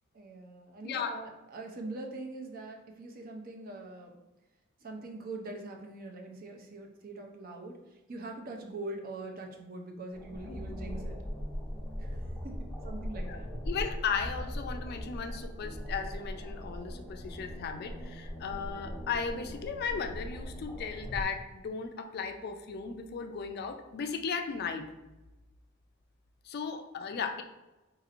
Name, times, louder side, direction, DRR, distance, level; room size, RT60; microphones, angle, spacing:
voice 1, 0.1-4.2 4.8-7.8 8.1-11.2 12.0-12.2 12.4-13.5, right 2 dB, 45° right, 2 dB, 0.5 m, -43 dB
voice 2, 0.8-1.1 10.5-10.6 13.2-13.4 13.7-24.9 26.4-27.4, left 6 dB, 50° left, 6 dB, 0.3 m, -36 dB
sound 1, 10.1-21.2, equal, 5° left, 0.7 m, -39 dB
3.9 x 2.9 x 2.5 m, 1.0 s
head